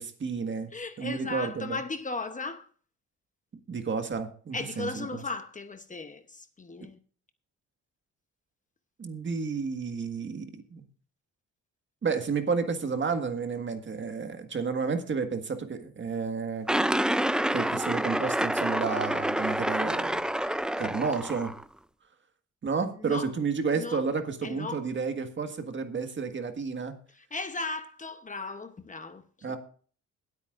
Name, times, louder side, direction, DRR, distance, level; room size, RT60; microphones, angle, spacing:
voice 1, 0.0-0.7 1.0-1.8 3.7-5.2 9.0-10.8 12.0-16.7 17.5-20.2 20.8-21.5 22.6-27.0 29.4-29.6, right 5 dB, 40° right, 1.7 m, -31 dB
voice 2, 0.7-2.7 4.5-7.0 23.0-23.3 23.8-24.0 24.4-24.9 27.2-29.6, left 3 dB, 25° left, 1.0 m, -36 dB
sound 1, 16.7-21.6, right 1 dB, 5° right, 0.4 m, -28 dB
21.5 x 8.5 x 2.5 m
cardioid pair, 90°, 30 cm